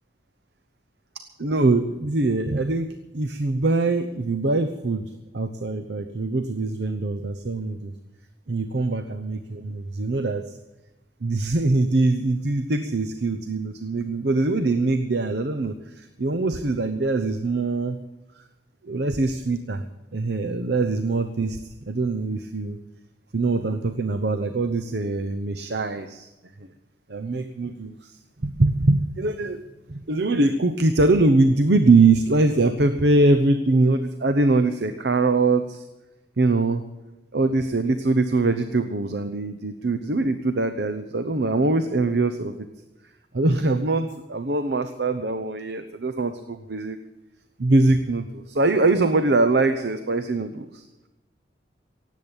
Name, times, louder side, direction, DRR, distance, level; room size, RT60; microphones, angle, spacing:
voice 1, 1.4-7.9 8.5-10.6 11.2-18.0 18.8-19.8 20.1-22.8 23.3-26.3 27.1-29.6 29.9-35.9 36.4-36.8 37.3-42.7 43.3-47.0 47.6-50.9, right 2 dB, 65° right, 9 dB, 0.8 m, -23 dB
17.5 x 8.3 x 8.9 m, 1.0 s
head